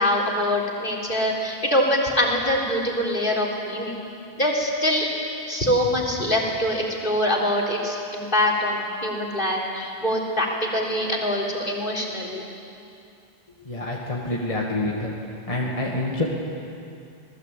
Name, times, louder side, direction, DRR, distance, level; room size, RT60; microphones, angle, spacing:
voice 1, 0.0-4.0 4.4-5.1 5.5-12.5, left 1 dB, 55° left, 0 dB, 3.9 m, -24 dB
voice 2, 13.6-15.1 15.5-16.2, left 2 dB, 35° left, -3 dB, 2.3 m, -27 dB
27.0 x 19.5 x 8.4 m, 2.6 s
omnidirectional pair, 1.1 m